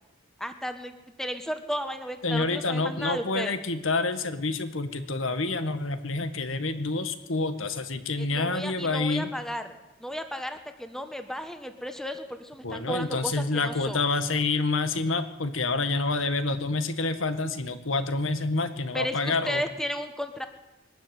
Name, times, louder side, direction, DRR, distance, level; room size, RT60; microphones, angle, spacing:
voice 1, 0.4-3.6 8.2-14.0 18.9-20.5, equal, ahead, 7 dB, 1.5 m, -34 dB
voice 2, 2.2-9.3 12.6-19.6, left 3 dB, 75° left, 9 dB, 1.8 m, -28 dB
22.0 x 12.5 x 9.4 m, 1.0 s
head